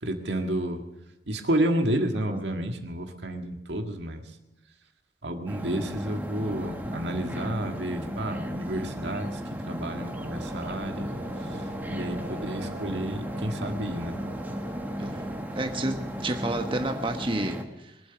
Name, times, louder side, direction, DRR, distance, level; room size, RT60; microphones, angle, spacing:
voice 1, 0.0-0.8 1.3-4.2 5.2-9.4 9.7-14.2, right 1 dB, 90° right, 5 dB, 1.7 m, -31 dB
sound 1, 5.5-17.6, equal, 10° right, 1.3 m, -35 dB
sound 2, 9.9-17.0, right 2 dB, 70° right, 2.9 m, -43 dB
voice 2, 15.0-15.9 16.2-18.0, right 2 dB, 30° right, 4 dB, 1.2 m, -30 dB
22.5 x 7.9 x 6.9 m, 1.0 s
head